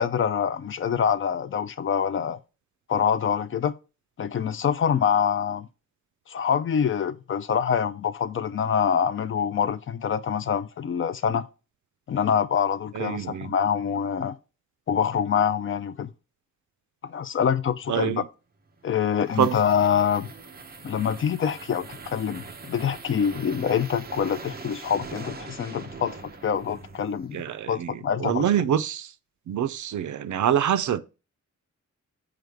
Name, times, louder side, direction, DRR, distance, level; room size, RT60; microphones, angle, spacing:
voice 1, 0.0-2.4 2.9-3.7 4.2-5.7 6.3-11.5 12.1-14.4 14.9-16.1 17.0-18.2 18.8-20.3 20.8-27.4 27.7-28.5, left 7 dB, 45° left, 0.4 m, -25 dB
voice 2, 13.0-13.5 17.9-18.2 19.4-19.6 27.3-27.9 28.2-29.1 29.5-31.0, right 9 dB, 75° right, 0.5 m, -25 dB
sound 1, 18.7-27.5, right 4 dB, 30° right, 0.8 m, -42 dB
7.8 x 4.9 x 3.5 m
wide cardioid pair, 175°, 30 cm